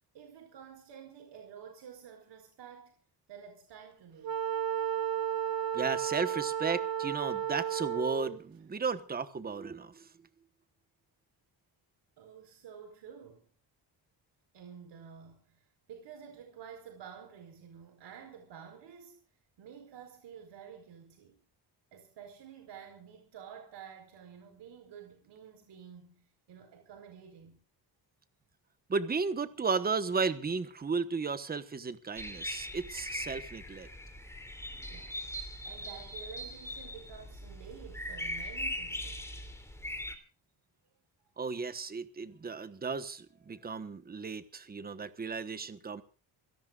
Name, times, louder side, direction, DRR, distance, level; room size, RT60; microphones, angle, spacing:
voice 1, 0.1-3.0 3.3-4.4 12.2-13.5 14.5-19.2 19.6-21.4 21.9-27.6 34.9-35.2 35.6-39.3, right 7 dB, 70° right, 4.8 m, -50 dB
Wind instrument woodwind instrument, 4.2-8.4, right 9 dB, 55° right, 1.4 m, -33 dB
voice 2, 5.7-10.1 28.9-33.9 41.4-46.0, right 4 dB, 20° right, 1.2 m, -34 dB
sound 1, 32.2-40.1, left 1 dB, 5° left, 3.0 m, -40 dB
27.5 x 17.5 x 2.5 m
cardioid pair, 160°, 43 cm